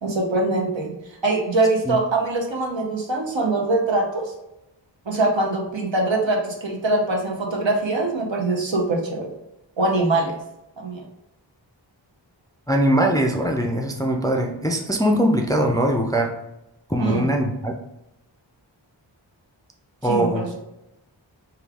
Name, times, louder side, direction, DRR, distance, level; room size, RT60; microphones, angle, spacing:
voice 1, 0.0-0.9 1.2-4.3 5.1-9.3 9.8-10.4 10.8-11.0 17.0-17.3 20.0-20.6, right 2 dB, 75° right, 0 dB, 0.8 m, -23 dB
voice 2, 12.7-16.3 16.9-17.7 20.0-20.6, right 1 dB, 10° left, 2 dB, 0.3 m, -21 dB
3.1 x 2.3 x 3.3 m, 0.89 s
wide cardioid pair, 45°, 46 cm